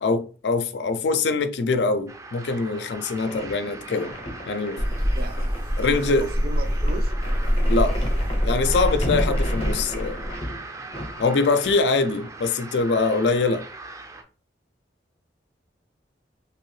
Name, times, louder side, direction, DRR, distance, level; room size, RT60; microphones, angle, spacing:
voice 1, 0.0-4.1 4.5-4.8 5.8-6.3 7.7-8.0 8.4-10.2 11.2-13.6, left 3 dB, 70° left, 0.4 m, -23 dB
sound 1, 2.1-14.2, right 3 dB, 20° right, 0.4 m, -41 dB
sound 2, 2.9-12.3, equal, 35° left, 0.6 m, -36 dB
sound 3, 4.8-10.4, equal, 80° right, 1.4 m, -24 dB
voice 2, 5.8-7.1, right 1 dB, 60° right, 0.6 m, -35 dB
2.9 x 2.7 x 3.1 m
head